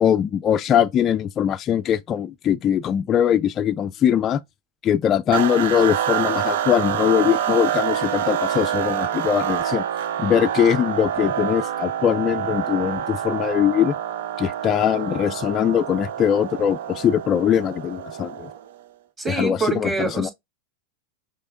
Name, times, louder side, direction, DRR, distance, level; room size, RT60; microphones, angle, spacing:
voice 1, 0.0-4.4 4.8-9.8 10.2-13.9 14.4-18.5 19.3-20.3, left 9 dB, 30° left, 0.3 m, -21 dB
sound 1, 5.3-18.7, right 10 dB, 70° right, 0.5 m, -27 dB
voice 2, 19.2-20.3, right 4 dB, 20° right, 2.5 m, -25 dB
5.4 x 3.7 x 2.4 m
hypercardioid pair, 120°, 0 cm